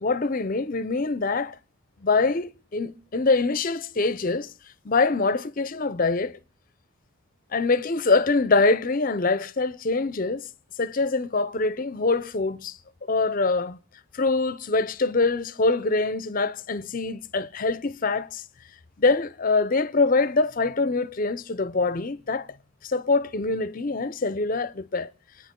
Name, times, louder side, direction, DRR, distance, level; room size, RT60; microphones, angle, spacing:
voice 1, 0.0-1.6 2.0-4.5 4.8-6.4 7.5-10.5 10.8-13.8 14.1-18.4 19.0-22.5 22.8-25.1, left 3 dB, 40° left, 0.6 m, -24 dB
26.5 x 9.5 x 3.8 m
head